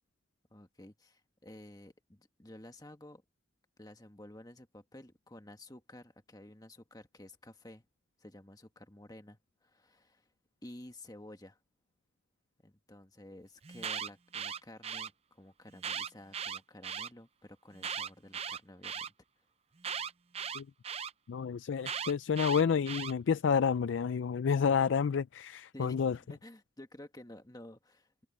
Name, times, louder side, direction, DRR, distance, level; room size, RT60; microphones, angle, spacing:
voice 1, 0.5-3.2 3.8-7.8 8.2-10.3 10.6-11.6 12.6-19.1 25.7-28.3, left 1 dB, 20° left, 1.5 m, -52 dB
Alarm, 13.6-15.1 15.8-17.1 17.8-19.1 19.8-21.1 21.8-23.1, right 7 dB, 30° right, 0.5 m, -38 dB
voice 2, 21.3-26.2, left 6 dB, 70° left, 0.4 m, -29 dB
head